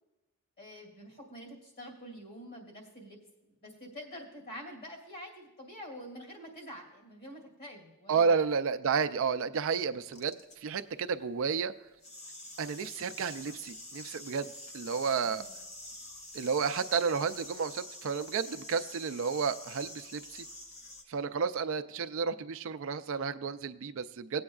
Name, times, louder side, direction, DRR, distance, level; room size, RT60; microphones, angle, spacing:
voice 1, 0.6-8.5 9.8-10.0 15.2-15.5, equal, 45° left, 1 dB, 2.5 m, -47 dB
voice 2, 8.1-11.7 12.6-15.5 16.3-20.4 21.1-24.4, right 5 dB, 60° right, 11 dB, 0.4 m, -31 dB
sound 1, 10.1-10.8 12.0-21.0, left 1 dB, 30° left, 0.9 m, -47 dB
18.0 x 8.6 x 2.4 m, 1.0 s
head